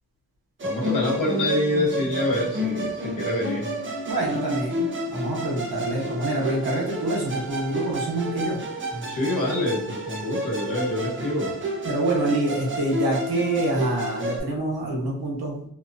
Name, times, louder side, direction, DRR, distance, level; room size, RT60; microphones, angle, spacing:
voice 1, 0.6-3.7 8.9-11.5, left 1 dB, 55° left, -5 dB, 1.2 m, -26 dB
Musical instrument, 0.6-14.4, equal, 35° right, 0.5 m, -31 dB
voice 2, 4.1-8.6 11.8-15.6, right 2 dB, 90° right, -2 dB, 1.0 m, -26 dB
2.8 x 2.2 x 2.4 m, 0.68 s
wide cardioid pair, 120°, 36 cm